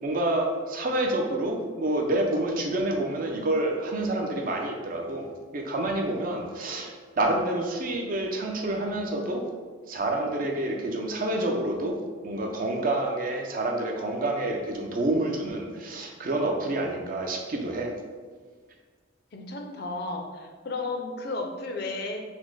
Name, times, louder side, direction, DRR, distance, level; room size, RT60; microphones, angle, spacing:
voice 1, 0.0-9.4 9.9-12.0 12.2-17.9, right 1 dB, 45° right, 2 dB, 0.4 m, -28 dB
voice 2, 19.3-22.2, left 3 dB, 50° left, 3 dB, 0.5 m, -33 dB
4.1 x 2.1 x 4.5 m, 1.5 s
head